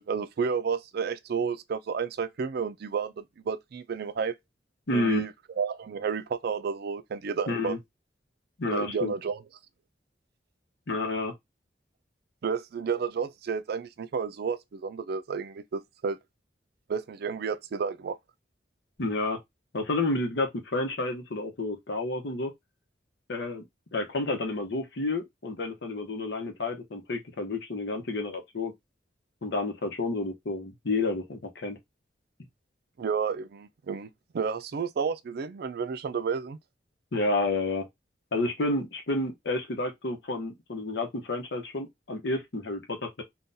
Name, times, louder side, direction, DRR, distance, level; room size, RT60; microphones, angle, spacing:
voice 1, 0.0-4.3 4.9-5.3 5.6-7.8 8.7-9.4 12.4-16.2 16.9-18.2 33.0-36.6, right 6 dB, 60° right, 0.4 m, -31 dB
voice 2, 4.9-5.3 7.5-7.8 8.6-9.1 10.9-11.3 19.0-19.4 19.7-22.5 23.3-23.6 23.9-28.7 29.4-31.8 37.1-37.9 38.3-43.2, left 2 dB, 65° left, 0.9 m, -30 dB
3.8 x 2.3 x 2.6 m
head